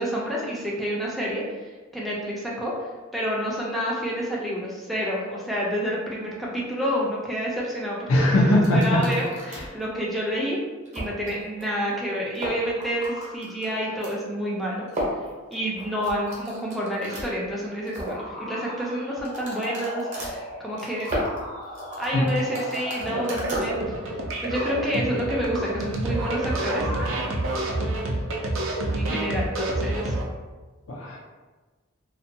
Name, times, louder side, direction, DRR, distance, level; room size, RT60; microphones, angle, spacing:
voice 1, 0.0-2.7 3.1-10.6 10.9-14.9 15.5-21.3 22.0-26.9 29.0-30.2, equal, ahead, -5 dB, 0.4 m, -29 dB
voice 2, 8.1-9.0 9.5-9.6 22.1-22.3 30.9-31.2, left 1 dB, 85° left, -2 dB, 0.5 m, -20 dB
sound 1, 8.6-9.8 10.3-10.4 10.9-11.3 11.6-11.7 11.9-12.0 12.3-14.1 14.9-17.3 17.7-18.3 19.2-23.7, equal, 35° right, 0.7 m, -34 dB
sound 2, 18.1-23.5, left 1 dB, 40° left, 0.6 m, -37 dB
sound 3, 23.0-30.2, right 1 dB, 65° right, 0.4 m, -28 dB
2.5 x 2.2 x 2.6 m, 1.3 s
head